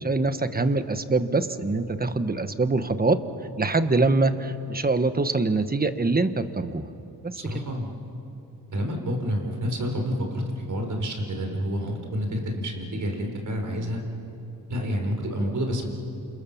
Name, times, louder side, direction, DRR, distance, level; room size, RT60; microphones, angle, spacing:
voice 1, 0.0-3.2 3.6-6.8 7.2-7.7, right 3 dB, 25° right, 10 dB, 1.4 m, -24 dB
voice 2, 7.4-7.9 8.7-10.4 10.7-14.0 14.7-15.9, equal, 50° right, 2 dB, 5.4 m, -28 dB
29.0 x 28.0 x 7.3 m, 2.8 s
cardioid pair, 90°, 38 cm